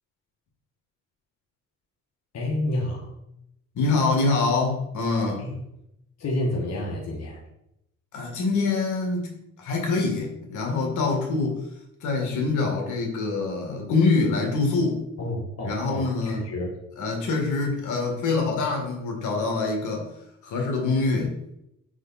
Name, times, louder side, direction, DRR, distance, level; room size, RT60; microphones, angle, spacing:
voice 1, 2.3-3.1 5.4-5.6 6.2-7.4 15.2-16.8, left 1 dB, 55° left, -2 dB, 1.4 m, -29 dB
voice 2, 3.8-5.4 8.1-9.3 9.6-11.6 12.0-15.0 15.6-16.4 17.0-20.1 20.4-21.3, left 3 dB, 75° left, 0 dB, 1.9 m, -25 dB
5.6 x 4.9 x 4.2 m, 0.81 s
cardioid pair, 90°, 30 cm